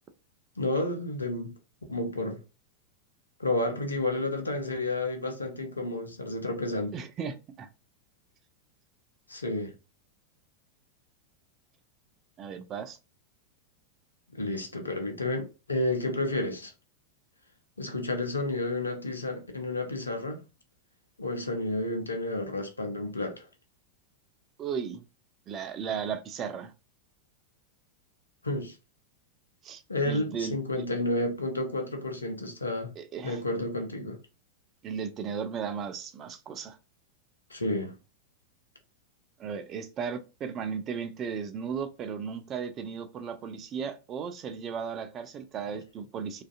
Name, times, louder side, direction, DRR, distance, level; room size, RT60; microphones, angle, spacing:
voice 1, 0.6-1.5 1.9-2.4 3.4-6.9 9.3-9.7 14.3-16.7 17.8-20.4 21.2-23.5 28.4-28.8 29.9-32.9 33.2-34.2 37.5-37.9, left 2 dB, 80° left, 0.6 m, -31 dB
voice 2, 6.9-7.7 12.4-13.0 24.6-25.0 25.5-26.7 29.6-30.9 33.0-33.4 34.8-36.8 39.4-46.4, right 6 dB, 30° right, 0.4 m, -35 dB
2.4 x 2.4 x 2.3 m
figure-of-eight pair, 90°, 0 cm